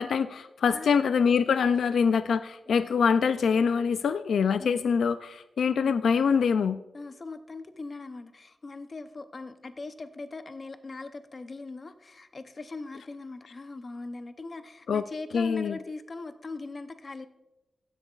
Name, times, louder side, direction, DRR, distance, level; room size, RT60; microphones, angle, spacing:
voice 1, 0.0-6.8 14.9-15.0 15.3-15.7, left 6 dB, 85° left, 12 dB, 0.3 m, -24 dB
voice 2, 0.7-1.1 2.7-3.0 4.6-4.8 6.9-17.3, left 3 dB, 35° left, 9 dB, 0.7 m, -40 dB
15.0 x 10.5 x 2.4 m, 1.0 s
wide cardioid pair, 135°, 0 cm